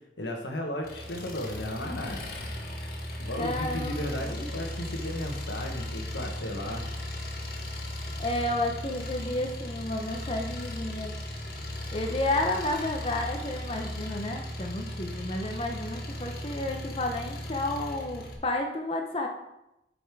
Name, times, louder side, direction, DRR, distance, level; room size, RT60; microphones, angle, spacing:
voice 1, 0.2-2.2 3.2-6.8, left 1 dB, 90° left, 2 dB, 1.4 m, -35 dB
Engine, 0.8-18.4, left 1 dB, 55° left, 1.3 m, -37 dB
voice 2, 3.4-4.4 8.2-11.1 11.9-19.3, left 1 dB, 30° left, 2 dB, 0.7 m, -31 dB
7.1 x 5.3 x 4.8 m, 0.88 s
head